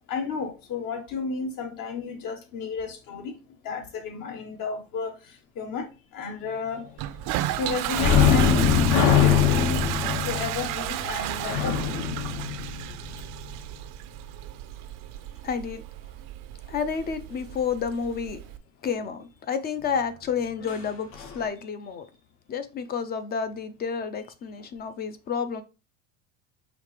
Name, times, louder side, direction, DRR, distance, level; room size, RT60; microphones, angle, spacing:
voice 1, 0.0-3.4 3.6-6.9 7.6-9.9 10.2-11.8, left 4 dB, 50° left, 1.2 m, -33 dB
Toilet flush, 7.0-18.6, right 14 dB, 50° right, 0.5 m, -33 dB
sound 1, 7.9-13.3 20.7-20.8 21.2-21.4, left 7 dB, 70° left, 1.6 m, -22 dB
voice 2, 15.4-15.8 16.7-18.4 18.8-22.1 22.5-25.6, left 6 dB, 25° left, 0.4 m, -30 dB
5.0 x 2.9 x 3.2 m
supercardioid pair, 110°, 42 cm